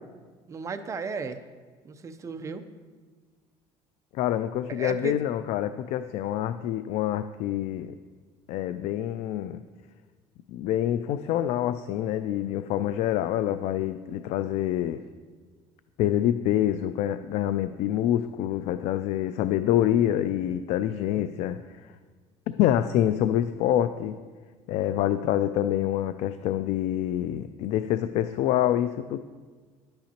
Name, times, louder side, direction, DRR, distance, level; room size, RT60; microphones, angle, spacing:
voice 1, 0.5-1.4 1.8-2.7 4.7-5.2, right 5 dB, 25° right, 8 dB, 0.6 m, -34 dB
voice 2, 4.1-7.9 8.5-9.6 10.5-15.0 16.0-21.9 22.6-24.2 24.7-29.2, left 11 dB, 70° left, 12 dB, 0.4 m, -26 dB
11.0 x 8.7 x 2.9 m, 1.4 s
cardioid pair, 125°, 12 cm